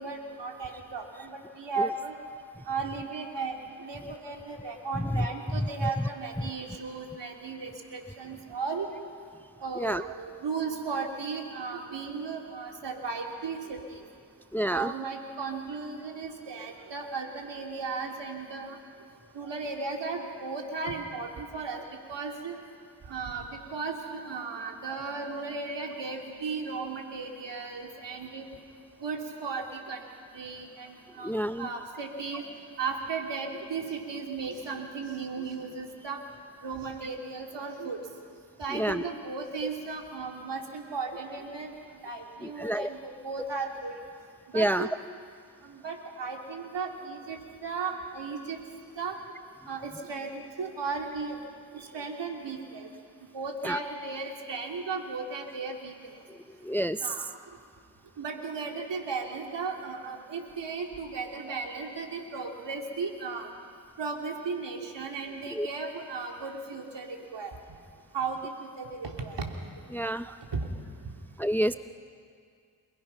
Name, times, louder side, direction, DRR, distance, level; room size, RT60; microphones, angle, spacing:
voice 1, 0.0-2.1 2.7-8.9 9.6-14.0 14.7-18.8 19.3-21.8 22.1-22.6 23.1-23.4 23.7-28.4 29.0-30.0 30.3-32.4 32.8-36.2 36.6-38.0 38.6-41.7 42.0-43.9 44.5-44.9 45.6-48.6 49.0-49.2 49.7-51.4 51.9-52.9 53.3-55.9 57.0-57.3 58.2-63.5 64.0-67.5 68.1-69.5 70.5-70.6 71.6-71.8, right 4 dB, 70° right, 2 dB, 3.0 m, -35 dB
voice 2, 5.0-5.3 9.8-10.0 14.5-14.9 31.2-31.7 38.7-39.0 42.4-42.9 44.5-44.9 53.6-53.8 56.6-57.0 65.6-65.7 69.9-70.3 71.4-71.7, equal, 5° left, 12 dB, 0.6 m, -28 dB
28.5 x 19.5 x 5.8 m, 2.1 s
supercardioid pair, 45°, 44 cm